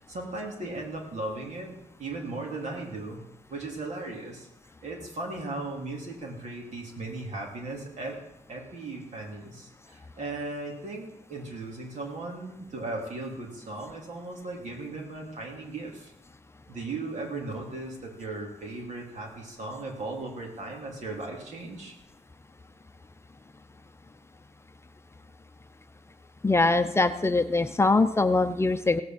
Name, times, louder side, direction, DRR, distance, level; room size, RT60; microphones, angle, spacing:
voice 1, 0.0-3.2 3.5-4.5 4.8-8.2 8.5-16.1 16.7-21.9, right 2 dB, 65° right, -1 dB, 3.7 m, -37 dB
voice 2, 26.4-29.0, left 3 dB, 20° left, 8 dB, 0.7 m, -23 dB
17.0 x 6.9 x 8.0 m, 0.88 s
wide cardioid pair, 115°, 13 cm